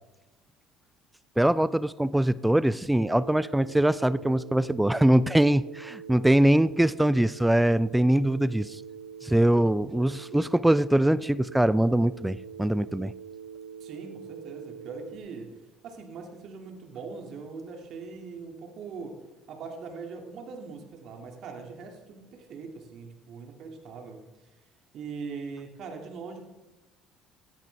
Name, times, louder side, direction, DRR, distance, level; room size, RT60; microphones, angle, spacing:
voice 1, 1.4-8.8 9.2-13.1, right 1 dB, 5° right, 18 dB, 0.4 m, -23 dB
Telephone, 3.0-15.2, right 7 dB, 90° right, 0.4 m, -44 dB
voice 2, 13.8-19.2 19.5-24.6 24.9-26.5, right 4 dB, 60° right, 3 dB, 2.4 m, -41 dB
17.5 x 13.5 x 3.4 m, 1.1 s
hypercardioid pair, 60°, 0 cm